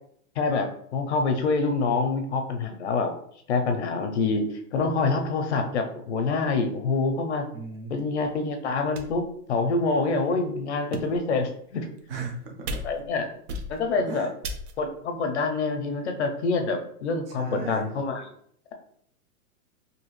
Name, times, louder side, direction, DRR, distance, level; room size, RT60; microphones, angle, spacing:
voice 1, 0.4-3.1 3.5-7.5 7.9-11.9 12.8-13.3 13.7-14.3 14.8-18.3, left 3 dB, 50° left, 5 dB, 0.5 m, -26 dB
voice 2, 7.5-7.9 12.1-12.8 13.5-13.6 14.1-14.3 17.4-17.8, right 4 dB, 40° right, 1 dB, 0.5 m, -35 dB
sound 1, 8.2-8.3 9.0-9.3 10.0-10.1 10.7-11.3 12.0-12.3 12.7-13.2 13.5-14.0 14.4-14.9, right 1 dB, 85° right, 0.7 m, -36 dB
2.7 x 2.4 x 3.0 m, 0.66 s
hypercardioid pair, 165°, 45 cm